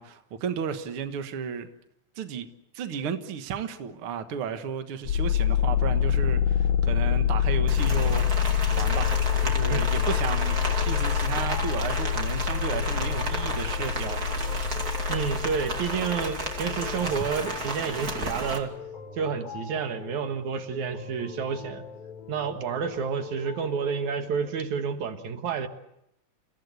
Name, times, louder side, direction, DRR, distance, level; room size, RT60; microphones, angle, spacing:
voice 1, 0.0-1.7 2.1-2.5 2.7-8.3 8.7-10.6 10.8-14.8, right 7 dB, 80° right, 1.2 m, -34 dB
sound 1, 5.0-17.7, left 9 dB, 65° left, 1.8 m, -26 dB
Rain, 7.7-18.6, right 2 dB, 25° right, 2.3 m, -33 dB
sound 2, 8.7-24.5, left 6 dB, 10° right, 7.9 m, -43 dB
voice 2, 15.1-18.7 19.1-21.8 22.3-25.7, right 6 dB, 60° right, 2.4 m, -30 dB
29.5 x 16.5 x 8.2 m
omnidirectional pair, 4.7 m